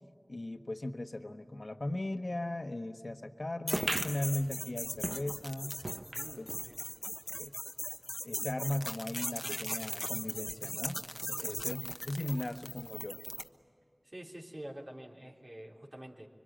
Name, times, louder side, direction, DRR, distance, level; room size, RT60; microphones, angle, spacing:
voice 1, 0.3-5.7 6.4-6.5 7.4-7.5 8.2-11.0 11.3-13.2, left 1 dB, 75° left, 6 dB, 1.3 m, -37 dB
sound 1, 3.7-13.5, left 1 dB, 20° left, 1.1 m, -39 dB
sound 2, 3.7-6.7 7.1-7.2 7.4-7.5 8.3-8.4, right 2 dB, 80° right, 1.2 m, -39 dB
voice 2, 6.1-6.8 11.4-11.6 14.0-16.3, right 1 dB, 50° right, -2 dB, 3.3 m, -47 dB
26.0 x 23.5 x 8.9 m, 2.4 s
wide cardioid pair, 45°, 0 cm